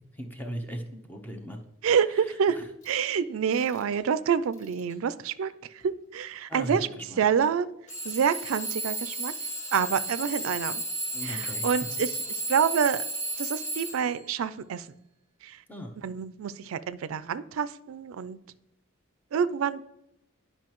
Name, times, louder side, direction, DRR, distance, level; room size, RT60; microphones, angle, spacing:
voice 1, 0.1-1.6 2.1-2.7 3.7-3.8 6.5-7.2 11.1-11.8 15.7-15.9, equal, 10° left, 4 dB, 0.8 m, -38 dB
voice 2, 1.8-2.6 2.9-6.9 7.2-7.7 8.0-9.3 9.7-10.8 11.2-12.1 12.5-13.0 13.4-14.9 15.4-15.6 16.0-18.4 19.3-19.8, right 7 dB, 85° right, 15 dB, 0.4 m, -27 dB
Alarm / Clock, 2.8-3.0 3.5-4.0 4.5-4.9 5.8-5.9 7.9-14.3, right 2 dB, 35° left, 1.5 m, -34 dB
10.5 x 5.4 x 3.0 m, 0.89 s
head